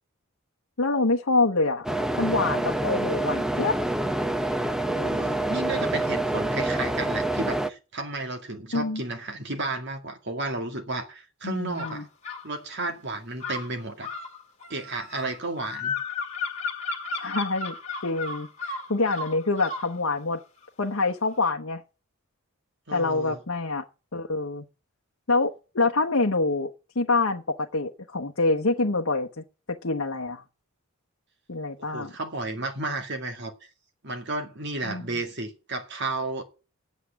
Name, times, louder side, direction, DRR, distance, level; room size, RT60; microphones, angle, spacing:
voice 1, 0.8-1.9 2.2-3.8 8.7-9.0 11.4-12.0 17.1-17.8 18.0-20.4 20.8-21.8 22.9-23.8 24.1-24.6 25.3-30.4 31.5-32.1 34.8-35.1, left 3 dB, 65° left, 1.0 m, -26 dB
sound 1, 1.8-7.7, right 1 dB, ahead, 0.5 m, -27 dB
voice 2, 4.9-12.1 12.4-14.1 14.7-15.9 22.9-23.4 31.8-33.5 34.0-36.4, right 2 dB, 50° right, 2.1 m, -32 dB
sound 2, 11.8-12.5 13.4-19.9, left 4 dB, 35° left, 2.1 m, -34 dB
8.4 x 8.0 x 8.4 m
head